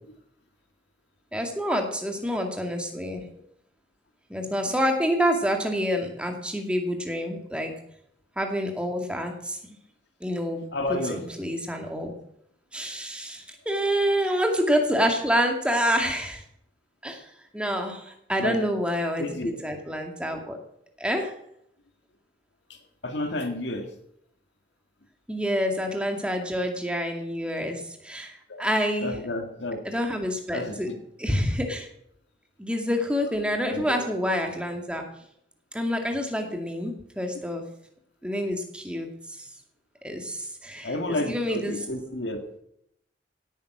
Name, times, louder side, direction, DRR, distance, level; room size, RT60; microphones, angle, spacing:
voice 1, 1.3-3.2 4.3-7.7 8.4-9.6 10.2-10.6 10.9-12.1 12.7-16.4 17.0-20.6 21.0-21.3 25.3-29.2 29.9-30.9 31.2-31.9 32.6-35.0 35.7-37.6 38.2-39.5 40.0-41.9, equal, 5° right, 3 dB, 2.1 m, -27 dB
voice 2, 10.7-11.2 18.4-18.6 19.2-19.6 22.7-22.8 23.0-23.9 28.5-28.7 29.0-29.8 30.5-31.0 33.7-34.0 38.2-38.3 40.8-42.4, left 2 dB, 75° left, 5 dB, 1.8 m, -31 dB
17.0 x 9.1 x 6.1 m, 0.73 s
head